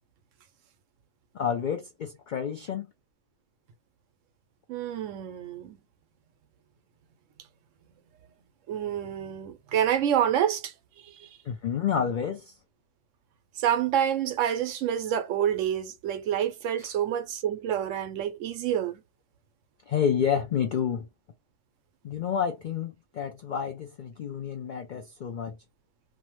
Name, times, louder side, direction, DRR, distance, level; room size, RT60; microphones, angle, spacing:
voice 1, 1.3-2.9 11.4-12.5 16.8-16.9 19.9-21.1 22.0-25.6, left 8 dB, 85° left, 0.4 m, -29 dB
voice 2, 4.7-5.8 8.7-10.7 11.0-11.3 13.6-19.0, right 10 dB, 75° right, 0.9 m, -28 dB
2.6 x 2.1 x 2.9 m
omnidirectional pair, 1.4 m